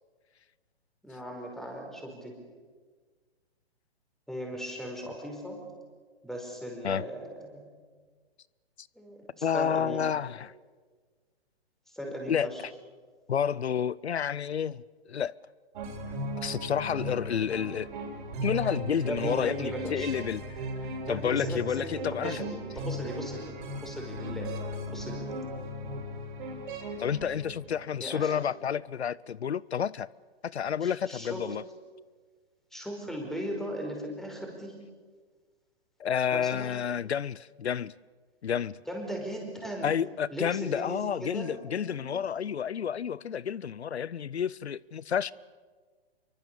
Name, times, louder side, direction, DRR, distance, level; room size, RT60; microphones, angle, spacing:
voice 1, 1.0-2.4 4.3-5.6 6.2-7.7 9.0-10.0 11.9-12.6 17.4-17.6 19.0-20.1 21.1-23.5 23.8-24.5 24.9-25.3 28.0-28.3 30.8-31.4 32.7-34.8 36.3-36.7 38.9-39.9 40.3-42.1, equal, ahead, 5.1 m, -38 dB
voice 2, 9.4-10.5 12.3-12.5 13.3-14.8 15.1-15.3 16.4-17.9 18.4-20.4 21.1-22.4 27.0-30.1 30.4-31.6 36.0-37.9 38.4-38.8 39.8-45.3, left 8 dB, 90° left, 0.6 m, -30 dB
sound 1, 15.8-28.0, equal, 50° right, 6.3 m, -37 dB
26.5 x 24.0 x 6.9 m
hypercardioid pair, 135°, 32 cm